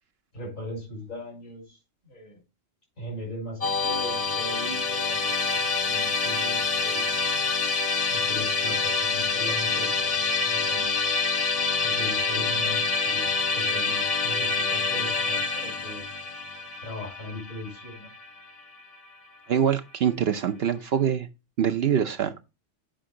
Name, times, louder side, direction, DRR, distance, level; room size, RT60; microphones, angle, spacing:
voice 1, 0.3-1.8 2.0-2.4 3.0-7.2 8.1-11.0 11.8-16.1 16.8-18.1, left 1 dB, 85° left, 5.6 m, -39 dB
Musical instrument, 3.6-18.8, left 4 dB, 35° left, 0.6 m, -26 dB
voice 2, 19.5-21.3 21.6-22.4, right 8 dB, 60° right, 0.8 m, -24 dB
7.7 x 5.2 x 3.7 m
omnidirectional pair, 1.3 m